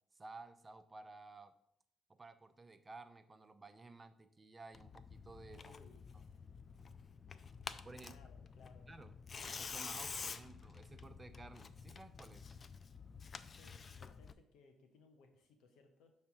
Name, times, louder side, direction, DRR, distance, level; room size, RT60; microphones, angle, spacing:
voice 1, 0.1-1.5 2.1-5.7 7.8-8.2 8.9-9.1 9.6-12.6, right 3 dB, 25° right, 10 dB, 0.6 m, -54 dB
Tearing, 4.7-14.3, left 5 dB, 40° left, 0.4 m, -49 dB
voice 2, 5.5-6.4 8.1-9.1 13.5-16.1, left 4 dB, 85° left, 5 dB, 0.9 m, -64 dB
6.8 x 3.3 x 6.0 m, 0.70 s
cardioid pair, 90°, 0 cm